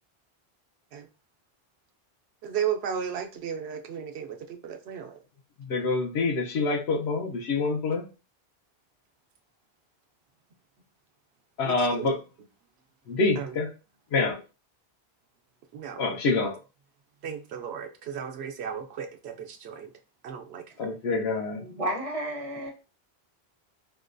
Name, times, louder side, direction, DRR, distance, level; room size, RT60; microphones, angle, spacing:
voice 1, 2.4-5.2 11.6-12.1 13.4-13.6 15.7-16.0 16.3-16.4 17.2-19.9 20.2-20.6, right 8 dB, 85° right, 0.9 m, -34 dB
voice 2, 5.6-8.0 11.6-12.2 13.1-13.7 14.1-14.4 16.0-16.6 20.8-21.6, left 3 dB, 90° left, 1.0 m, -26 dB
voice 3, 21.6-22.7, right 1 dB, 35° right, 0.9 m, -32 dB
4.8 x 2.2 x 2.5 m
omnidirectional pair, 1.1 m